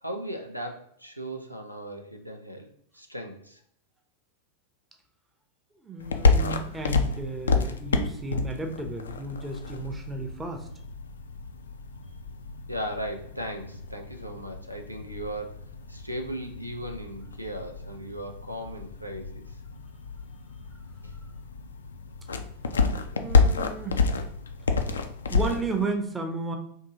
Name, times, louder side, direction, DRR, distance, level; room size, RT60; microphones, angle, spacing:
voice 1, 0.0-2.7 2.9-3.6 12.7-15.6 15.9-19.6 21.0-21.1, equal, 90° right, 4 dB, 0.4 m, -37 dB
voice 2, 5.8-10.7 23.1-24.1 25.3-26.6, right 3 dB, 15° right, 4 dB, 0.6 m, -33 dB
sound 1, 6.0-25.8, left 4 dB, 70° left, 0.3 m, -29 dB
3.6 x 2.7 x 2.7 m, 0.66 s
figure-of-eight pair, 90°, 0 cm